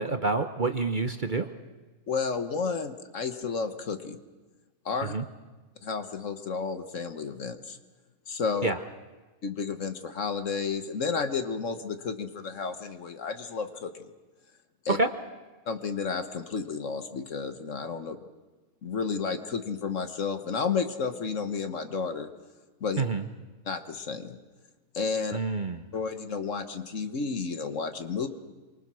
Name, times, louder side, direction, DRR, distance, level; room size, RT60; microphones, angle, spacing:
voice 1, 0.0-1.5 5.0-5.2 8.6-8.8 14.9-15.1 23.0-23.2 25.3-25.8, right 3 dB, 40° right, 7 dB, 0.9 m, -27 dB
voice 2, 2.1-4.2 4.8-5.1 5.8-7.8 8.3-8.7 9.4-14.1 14.8-15.0 15.7-18.2 18.8-22.3 22.8-23.0 23.7-24.4 24.9-25.4 25.9-28.3, left 5 dB, 60° left, 8 dB, 1.6 m, -31 dB
26.5 x 24.0 x 6.3 m, 1.2 s
omnidirectional pair, 1.6 m